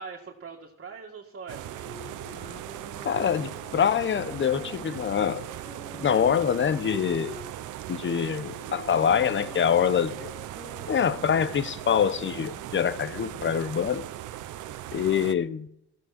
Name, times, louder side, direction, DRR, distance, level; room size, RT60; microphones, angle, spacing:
voice 1, 0.0-1.9 2.9-3.1, right 5 dB, 45° right, 2.1 m, -42 dB
sound 1, 1.5-15.3, right 12 dB, 85° right, 0.9 m, -39 dB
Wind instrument woodwind instrument, 1.7-7.5 8.3-13.7, left 2 dB, 25° left, 1.5 m, -48 dB
voice 2, 3.0-5.5 6.0-7.4 7.9-10.3 10.9-14.1 14.9-15.7, left 8 dB, 40° left, 0.8 m, -25 dB
15.0 x 13.5 x 4.4 m
cardioid pair, 90°, 30 cm